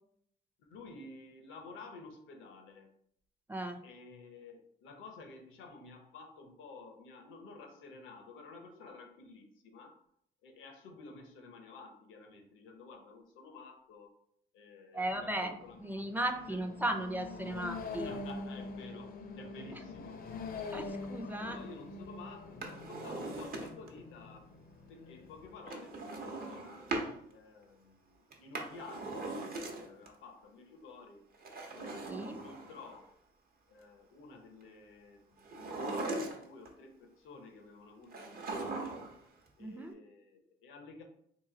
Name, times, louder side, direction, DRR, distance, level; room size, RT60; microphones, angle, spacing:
voice 1, 0.6-2.9 3.8-10.0 10.4-14.1 14.5-15.9 16.3-16.6 18.0-20.8 21.3-24.5 24.9-26.9 27.3-31.3 31.7-33.1 33.7-39.0 39.6-41.0, left 3 dB, 85° left, 4 dB, 0.7 m, -52 dB
voice 2, 14.9-18.1 20.7-21.6 32.0-32.4 39.6-39.9, right 1 dB, 10° right, 5 dB, 0.5 m, -36 dB
sound 1, 15.0-25.7, left 3 dB, 50° left, 0.5 m, -45 dB
Drawer open or close, 22.5-24.0 25.7-27.1 28.3-30.1 31.3-33.0 35.4-36.7 38.1-39.2 39.5-39.6, right 2 dB, 50° right, 0.8 m, -40 dB
3.0 x 2.6 x 3.7 m, 0.69 s
cardioid pair, 90°, 20 cm